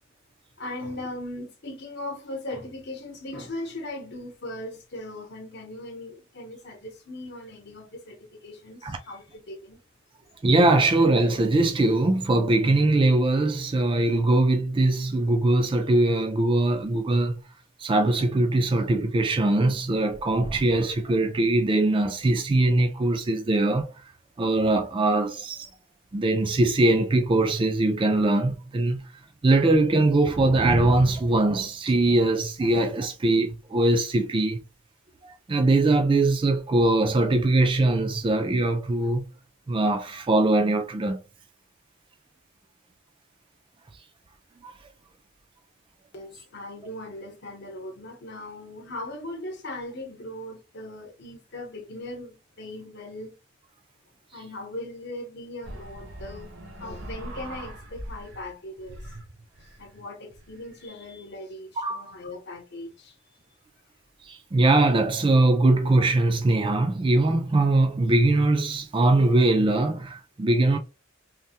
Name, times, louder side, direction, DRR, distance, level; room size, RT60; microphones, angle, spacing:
voice 1, 0.6-9.8 46.1-53.4 54.3-56.5 56.8-59.1 59.8-63.2, left 1 dB, 55° left, 0.8 m, -39 dB
voice 2, 10.4-17.3 17.8-23.9 24.4-25.7 26.1-29.0 29.4-34.6 35.2-39.3 39.7-41.2 44.6-44.7 61.8-62.0 64.3-70.8, right 2 dB, 25° right, 0.3 m, -21 dB
sound 1, 55.6-58.5 58.8-60.9, right 1 dB, 60° right, 0.8 m, -41 dB
3.2 x 2.1 x 2.7 m
head